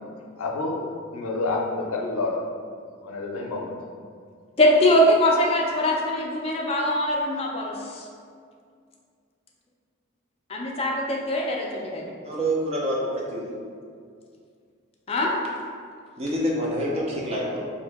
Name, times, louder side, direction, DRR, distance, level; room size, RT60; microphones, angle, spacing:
voice 1, 0.4-0.8 1.1-2.4 3.0-3.8, left 3 dB, 90° left, 0 dB, 0.5 m, -28 dB
voice 2, 4.6-8.1 10.5-12.1 15.1-15.3, left 1 dB, 30° left, -2 dB, 0.4 m, -22 dB
voice 3, 12.2-13.5 16.2-17.6, equal, 30° right, -3 dB, 0.5 m, -27 dB
2.8 x 2.6 x 3.4 m, 2.2 s
head